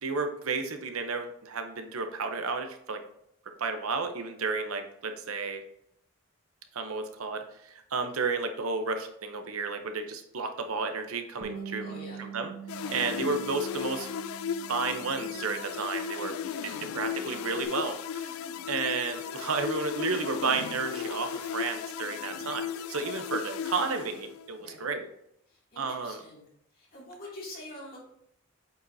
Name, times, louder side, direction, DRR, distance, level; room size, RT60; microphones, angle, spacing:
voice 1, 0.0-3.0 3.6-5.6 6.7-12.5 12.9-14.1 14.7-16.3 16.6-18.3 18.7-25.1 25.8-26.2, right 4 dB, 80° right, 7 dB, 0.8 m, -32 dB
Bass guitar, 11.4-16.1 16.4-17.7, right 7 dB, 30° right, 1.0 m, -44 dB
voice 2, 11.5-12.3 12.7-13.1 16.1-17.0 18.3-18.4 22.9-23.3 24.6-24.9 25.5-26.4 26.7-28.0, left 1 dB, 40° left, -5 dB, 2.6 m, -46 dB
sound 1, 12.7-24.6, left 8 dB, 75° left, 0.3 m, -36 dB
7.9 x 5.0 x 2.7 m, 0.73 s
head